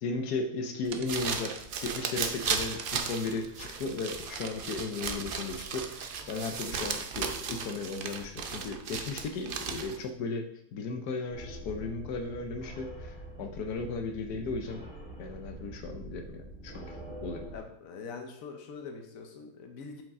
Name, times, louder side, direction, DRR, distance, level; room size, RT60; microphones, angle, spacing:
voice 1, 0.0-10.4 10.7-14.8 15.2-17.5, left 3 dB, 85° left, 5 dB, 1.3 m, -36 dB
sound 1, 0.8-10.1, right 5 dB, 60° right, 0.5 m, -36 dB
sound 2, 0.9-1.7 2.8-3.2 4.3-4.9, right 7 dB, 90° right, 1.2 m, -45 dB
sound 3, 11.3-17.6, right 1 dB, 25° right, 3.2 m, -45 dB
voice 2, 17.5-20.0, left 5 dB, 65° left, 4 dB, 1.3 m, -43 dB
7.4 x 5.1 x 3.7 m, 0.70 s
omnidirectional pair, 1.6 m